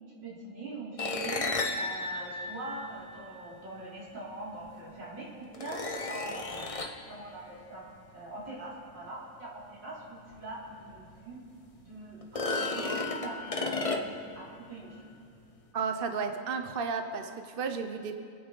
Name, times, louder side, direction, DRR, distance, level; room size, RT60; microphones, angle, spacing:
voice 1, 0.2-7.9 8.1-11.4 11.9-15.1, right 2 dB, 65° right, -6 dB, 4.4 m, -43 dB
sound 1, 1.0-3.5 4.7-4.8 5.5-7.1 10.4-10.5 10.9-11.0 12.2-14.4, left 3 dB, 35° left, 0.5 m, -33 dB
voice 2, 15.7-18.1, right 5 dB, 40° right, 6 dB, 0.8 m, -33 dB
27.5 x 9.3 x 5.4 m, 2.3 s
omnidirectional pair, 2.1 m